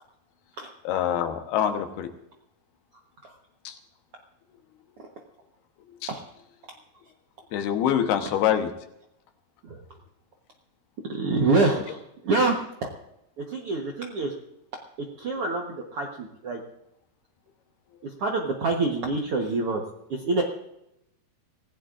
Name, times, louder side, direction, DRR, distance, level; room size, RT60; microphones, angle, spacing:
voice 1, 0.8-2.1 3.6-3.8 6.0-6.1 7.5-8.7, left 10 dB, 85° left, 6 dB, 3.1 m, -25 dB
voice 2, 11.1-12.0 12.2-12.6 13.5-14.3 15.2-16.6 18.2-19.8 20.1-20.4, right 3 dB, 70° right, 1 dB, 1.4 m, -25 dB
25.5 x 16.5 x 2.5 m, 0.81 s
omnidirectional pair, 4.4 m